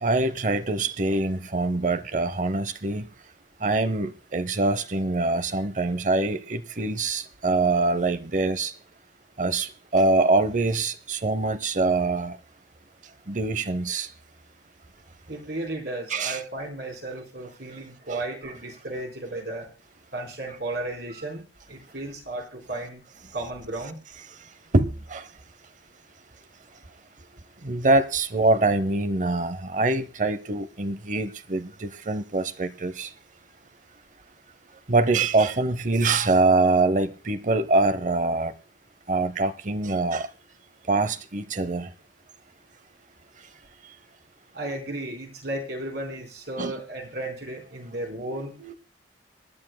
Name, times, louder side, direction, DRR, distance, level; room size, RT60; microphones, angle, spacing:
voice 1, 0.0-3.1 3.6-8.7 9.4-12.4 13.3-14.1 16.1-16.4 18.1-18.2 24.7-25.3 27.6-33.1 34.9-38.5 39.1-40.3 40.9-41.9 46.6-46.8 48.2-48.7, right 2 dB, 45° right, 0.8 m, -24 dB
voice 2, 15.3-19.7 20.1-23.0 23.3-24.0 44.5-48.5, right 2 dB, 65° right, 4.0 m, -34 dB
26.0 x 11.5 x 2.2 m
head